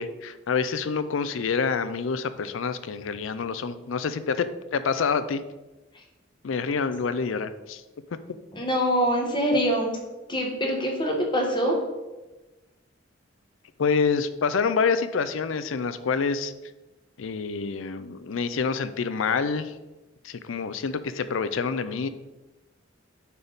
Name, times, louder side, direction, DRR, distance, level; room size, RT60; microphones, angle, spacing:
voice 1, 0.0-5.4 6.4-7.8 13.8-16.5 17.2-19.7 20.2-22.1, left 5 dB, 90° left, 12 dB, 0.5 m, -27 dB
voice 2, 8.5-10.0 10.3-11.8, equal, 25° left, 0 dB, 1.3 m, -24 dB
9.6 x 3.6 x 4.0 m, 1.1 s
head